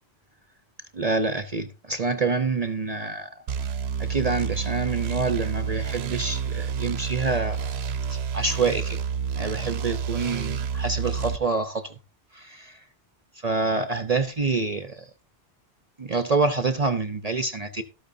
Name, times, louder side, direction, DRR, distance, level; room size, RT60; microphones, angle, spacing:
voice 1, 0.9-3.3 4.0-7.7 8.1-9.0 9.3-11.9 12.3-12.8 13.4-15.0 16.0-17.8, right 4 dB, 40° right, 0.8 m, -27 dB
sound 1, 3.5-11.4, right 7 dB, 70° right, 1.0 m, -29 dB
13.0 x 12.0 x 2.7 m
omnidirectional pair, 1.1 m